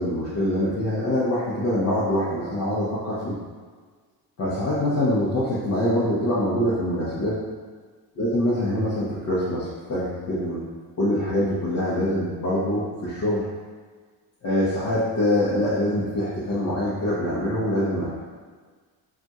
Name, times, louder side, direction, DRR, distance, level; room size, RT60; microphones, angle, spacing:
voice 1, 0.0-3.4 4.4-7.4 8.2-10.6 11.0-13.4 14.4-18.1, left 1 dB, 45° left, -10 dB, 0.8 m, -24 dB
2.5 x 2.4 x 4.1 m, 1.5 s
cardioid pair, 125°, 41 cm